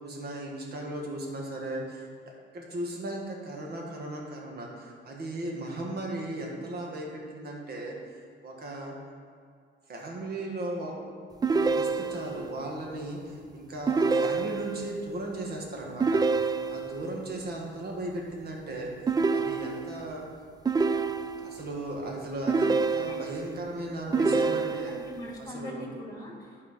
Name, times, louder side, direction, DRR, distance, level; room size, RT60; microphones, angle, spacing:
voice 1, 0.0-8.0 8.4-8.9 9.9-10.9 11.5-16.2 16.7-18.9 19.3-20.3 21.4-25.0 25.4-25.9, right 1 dB, 55° right, -1 dB, 1.9 m, -37 dB
sound 1, 11.4-12.5 13.9-14.9 16.0-17.0 19.1-20.1 20.7-21.6 22.5-23.5 24.1-25.1, right 4 dB, 20° right, 0.3 m, -27 dB
voice 2, 24.0-24.5 24.9-26.7, left 2 dB, 20° left, -1 dB, 2.4 m, -42 dB
12.0 x 4.8 x 4.5 m, 2.2 s
cardioid pair, 90°, 20 cm